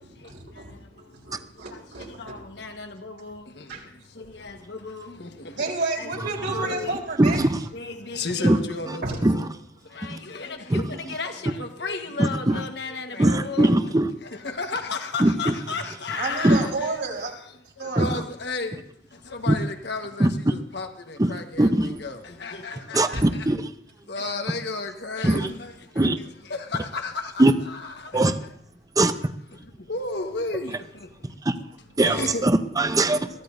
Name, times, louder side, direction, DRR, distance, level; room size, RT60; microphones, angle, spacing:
voice 1, 0.0-2.4 3.7-3.8 5.6-7.4 9.0-9.2 16.2-17.3 17.8-18.1 23.1-23.3, right 3 dB, 75° right, 3.7 m, -31 dB
voice 2, 2.2-3.6 4.3-5.3 6.0-7.0 7.7-9.0 9.3-9.5 10.0-13.7 14.4-17.0 18.0-18.7 19.3-23.5 24.1-25.7 26.5-27.3 27.7-28.2 29.9-30.7 32.0-32.5, left 3 dB, 70° left, 1.4 m, -33 dB
voice 3, 7.2-7.6 8.4-8.6 8.9-9.0 9.2-9.4 10.1-10.2 10.7-10.8 12.2-12.6 13.2-14.1 15.2-15.5 16.4-16.6 18.0-18.2 19.5-19.6 20.2-20.5 21.2-21.3 21.6-22.0 22.9-23.7 25.2-25.5 26.0-26.2 27.4-27.5 28.1-28.3 29.0-29.3 32.0-33.3, right 1 dB, 20° right, 0.7 m, -21 dB
22.5 x 15.0 x 2.7 m
head